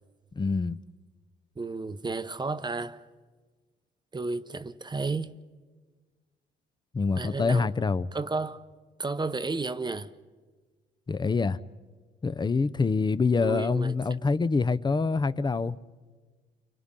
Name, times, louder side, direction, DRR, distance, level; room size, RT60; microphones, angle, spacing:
voice 1, 0.4-0.8 6.9-8.1 11.1-11.6 12.2-15.8, left 4 dB, 20° left, 0.6 m, -26 dB
voice 2, 1.6-3.0 4.1-5.3 7.2-7.7 8.1-8.6 9.0-10.1 13.4-13.9, right 3 dB, 20° right, 0.8 m, -32 dB
29.5 x 26.5 x 3.8 m
cardioid pair, 90°, 20 cm